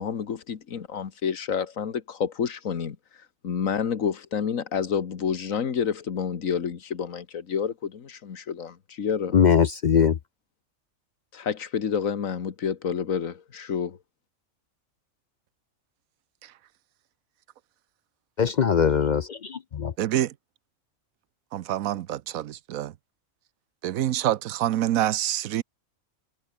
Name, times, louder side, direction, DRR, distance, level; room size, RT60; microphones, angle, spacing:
voice 1, 0.0-3.0 3.4-9.4 11.3-14.0, left 7 dB, 75° left, 1.8 m, -29 dB
voice 2, 9.3-10.2 18.4-19.9, left 7 dB, 55° left, 0.5 m, -21 dB
voice 3, 20.0-20.3 21.5-22.9 23.8-25.6, right 12 dB, 90° right, 1.1 m, -26 dB
omnidirectional pair, 1.4 m